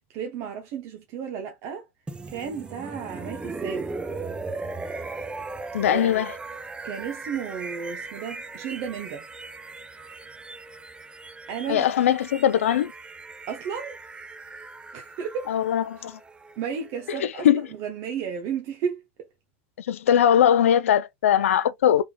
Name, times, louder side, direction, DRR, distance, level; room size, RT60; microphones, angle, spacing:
voice 1, 0.0-1.9 2.3-3.9 5.8-6.2 6.8-9.3 11.5-12.1 13.5-14.0 14.9-15.6 16.0-16.1 16.6-19.3, right 7 dB, 55° right, 0.8 m, -33 dB
sound 1, 2.1-17.9, right 3 dB, 15° right, 0.6 m, -38 dB
voice 2, 5.7-6.3 11.7-12.9 15.5-16.2 17.4-17.6 19.8-22.0, left 10 dB, 85° left, 0.4 m, -20 dB
3.5 x 3.4 x 2.3 m
hypercardioid pair, 100°, 7 cm